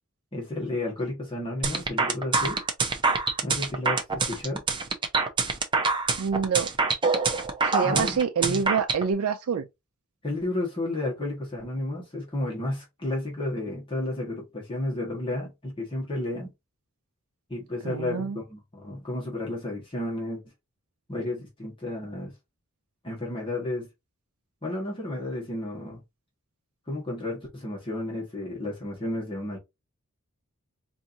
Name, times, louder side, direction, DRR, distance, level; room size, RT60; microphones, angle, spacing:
voice 1, 0.3-2.6 3.4-4.6 7.8-8.2 8.4-8.6 10.2-16.5 17.5-20.4 21.1-22.3 23.0-23.9 24.6-26.0 26.9-29.6, left 1 dB, 25° left, 1.4 m, -32 dB
sound 1, 1.6-9.0, right 4 dB, 20° right, 0.6 m, -25 dB
voice 2, 6.2-6.7 7.6-9.7 17.8-18.4, right 6 dB, 75° right, 0.4 m, -26 dB
4.5 x 2.7 x 2.6 m
head